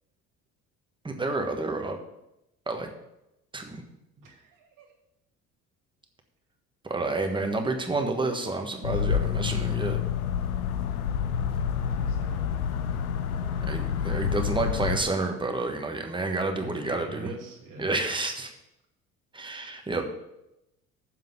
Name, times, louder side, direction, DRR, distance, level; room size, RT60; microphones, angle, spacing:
voice 1, 1.0-2.0 2.7-2.9 3.5-3.8 6.8-10.0 13.7-17.3 17.8-18.5 19.3-20.1, right 2 dB, 10° right, 4 dB, 1.3 m, -29 dB
voice 2, 4.2-4.9 11.7-12.5 16.6-17.9, right 3 dB, 45° right, 1 dB, 2.4 m, -43 dB
sound 1, 8.8-15.0, left 8 dB, 75° left, 0.7 m, -28 dB
7.3 x 5.8 x 7.2 m, 0.89 s
figure-of-eight pair, 55°, 44 cm